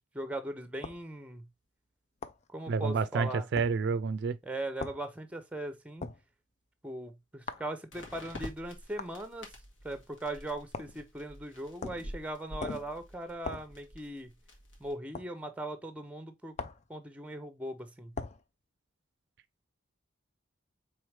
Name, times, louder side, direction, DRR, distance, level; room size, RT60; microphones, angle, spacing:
voice 1, 0.0-1.5 2.5-3.5 4.4-6.1 6.8-9.5 9.8-14.3 14.8-16.5 16.9-18.1, right 1 dB, 5° right, 0.6 m, -39 dB
sound 1, 0.8-1.0 2.2-2.4 3.6-3.7 4.8-5.0 6.0-6.2 7.5-7.7 9.0-9.2 10.7-11.0 11.8-12.1 12.6-12.9 13.4-13.7 15.1-15.3 16.6-16.9 18.1-18.4, left 4 dB, 35° left, 0.4 m, -40 dB
sound 2, 1.1-1.2 7.9-14.9, left 1 dB, 80° left, 1.6 m, -48 dB
voice 2, 2.7-4.4, right 5 dB, 60° right, 0.3 m, -29 dB
4.7 x 3.5 x 3.1 m
head